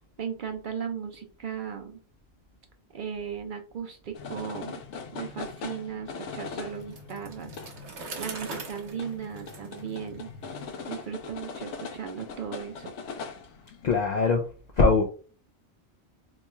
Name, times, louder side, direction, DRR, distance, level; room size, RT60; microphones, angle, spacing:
voice 1, 0.2-2.0 2.9-4.8 5.1-7.5 8.2-10.3 10.9-12.9, right 7 dB, 55° right, 4 dB, 0.6 m, -36 dB
sound 1, 4.1-13.9, left 5 dB, 90° left, 1.0 m, -41 dB
Bicycle, 6.8-10.6, right 4 dB, 75° right, 1.1 m, -42 dB
voice 2, 13.8-14.5 14.8-15.0, left 4 dB, 55° left, 1 dB, 0.5 m, -21 dB
3.0 x 2.3 x 4.2 m, 0.38 s
omnidirectional pair, 1.2 m